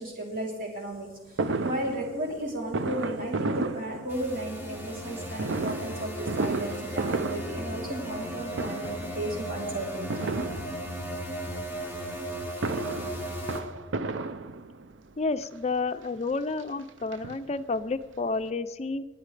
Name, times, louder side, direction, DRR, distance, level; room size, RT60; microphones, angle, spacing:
voice 1, 0.0-10.5, right 1 dB, 50° right, -2 dB, 3.4 m, -35 dB
Fireworks, 1.4-4.6 5.4-8.3 8.5-9.2 10.1-11.2 12.3-15.0 15.8-15.9 16.2-16.3 16.6-17.8 18.1-18.2 18.4-18.5, right 3 dB, 75° right, 0.6 m, -33 dB
sound 1, 4.1-13.6, equal, 10° right, 1.7 m, -36 dB
voice 2, 15.2-19.0, left 3 dB, 35° left, 10 dB, 0.5 m, -30 dB
27.0 x 9.1 x 3.3 m, 1.2 s
head